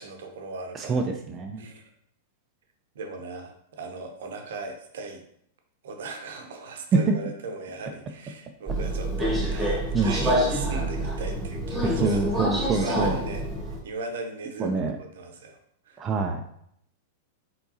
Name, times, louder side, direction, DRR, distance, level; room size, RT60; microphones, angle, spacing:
voice 1, 0.0-1.0 1.6-1.9 2.9-5.2 5.8-15.6 15.9-16.0, right 3 dB, 65° right, 4 dB, 0.8 m, -38 dB
voice 2, 0.7-1.7 7.1-7.2 9.9-10.2 11.8-13.2 14.6-15.0 16.0-16.4, right 4 dB, 25° right, 3 dB, 0.4 m, -26 dB
Subway metro underground, 8.7-13.8, equal, 5° right, 1.6 m, -27 dB
4.5 x 3.8 x 2.7 m, 0.70 s
figure-of-eight pair, 95°, 0 cm